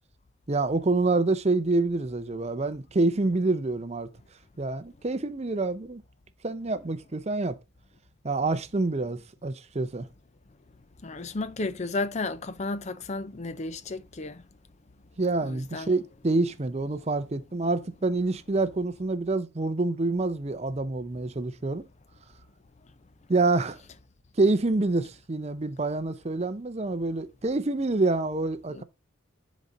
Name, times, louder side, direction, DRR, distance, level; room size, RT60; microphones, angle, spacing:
voice 1, 0.5-4.1 4.6-6.0 6.4-7.6 8.2-10.1 15.2-21.9 23.3-23.8 24.4-28.8, right 2 dB, 35° right, 0.6 m, -27 dB
voice 2, 11.0-14.4 15.4-15.9 28.8-28.9, left 3 dB, 35° left, 0.5 m, -33 dB
10.5 x 4.2 x 3.8 m
head